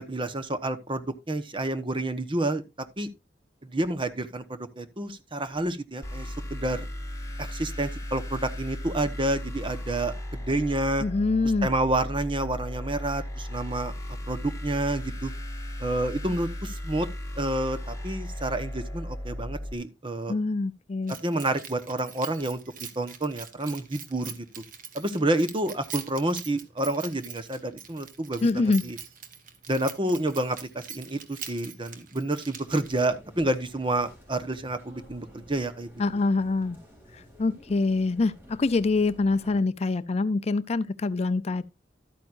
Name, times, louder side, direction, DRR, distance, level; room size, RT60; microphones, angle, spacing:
voice 1, 0.0-2.6 3.0-3.1 3.6-6.9 7.4-11.0 11.6-13.9 14.3-15.3 15.8-17.1 17.4-20.3 21.2-22.6 22.9-24.4 24.9-29.0 29.7-35.9, right 1 dB, 30° right, 1.1 m, -29 dB
sound 1, 6.0-19.7, left 1 dB, 20° left, 2.4 m, -36 dB
voice 2, 11.0-11.7 20.3-21.2 28.4-28.8 36.0-36.8 37.1-41.6, left 3 dB, 35° left, 0.4 m, -25 dB
Keys jangling, 21.1-33.2, right 7 dB, 50° right, 1.5 m, -43 dB
sound 2, 32.6-39.6, equal, 15° right, 3.8 m, -51 dB
12.5 x 9.2 x 2.6 m
head